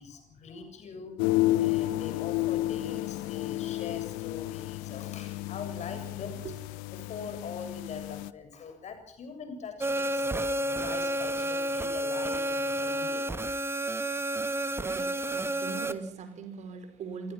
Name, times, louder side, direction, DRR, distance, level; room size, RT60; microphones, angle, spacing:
voice 1, 0.0-6.5 6.9-10.3 10.7-13.3 13.8-13.9, left 5 dB, 45° left, 7 dB, 7.3 m, -43 dB
sound 1, 1.2-8.3, left 17 dB, 65° left, 1.0 m, -31 dB
sound 2, 9.8-15.9, right 1 dB, 15° right, 1.8 m, -30 dB
voice 2, 14.5-17.3, right 5 dB, 50° right, 9 dB, 5.3 m, -41 dB
28.5 x 22.5 x 6.1 m, 0.64 s
figure-of-eight pair, 50°, 16 cm